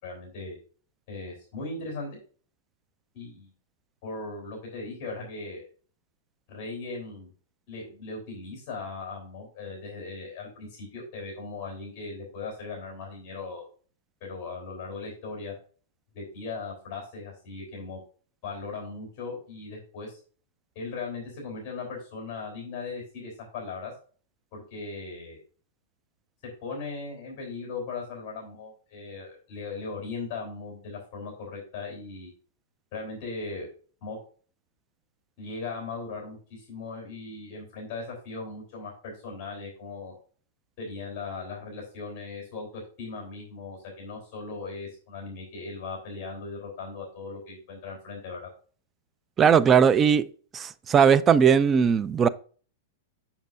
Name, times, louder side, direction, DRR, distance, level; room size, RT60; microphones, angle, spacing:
voice 1, 0.0-0.6 1.1-2.2 3.1-3.5 4.0-5.7 6.5-7.3 7.7-13.6 14.2-15.5 16.1-18.0 18.4-20.2 20.8-23.9 24.5-25.4 26.6-32.3 32.9-33.7 34.0-34.2 35.4-40.1 40.8-48.4, left 4 dB, 40° left, 3.6 m, -38 dB
voice 2, 49.4-50.2 50.5-52.3, right 7 dB, 20° right, 0.4 m, -19 dB
7.3 x 7.0 x 2.6 m
supercardioid pair, 155°, 0 cm